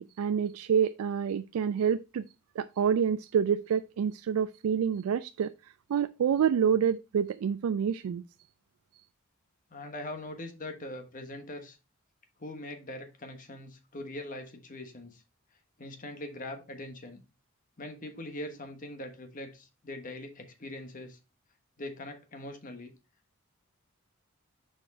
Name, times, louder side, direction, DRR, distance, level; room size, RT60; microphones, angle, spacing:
voice 1, 0.0-2.2 2.6-5.5 5.9-8.2, right 7 dB, 85° right, 0.3 m, -27 dB
voice 2, 9.7-11.8 12.4-15.2 15.8-17.2 17.8-21.2 21.8-22.9, left 1 dB, 40° left, 1.3 m, -42 dB
6.4 x 4.9 x 4.2 m
head